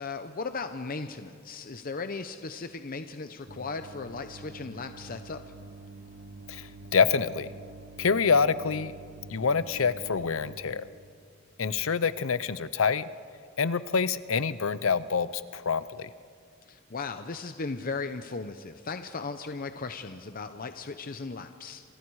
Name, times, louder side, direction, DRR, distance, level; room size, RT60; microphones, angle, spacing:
voice 1, 0.0-5.4 16.7-21.8, left 4 dB, 45° left, 8 dB, 0.8 m, -37 dB
sound 1, 3.5-10.6, right 3 dB, 60° right, 4.0 m, -47 dB
voice 2, 6.5-7.5 8.0-8.9 9.3-10.9 11.6-13.1 13.6-16.1, left 5 dB, 75° left, 15 dB, 0.7 m, -26 dB
28.0 x 27.0 x 4.8 m, 2.4 s
head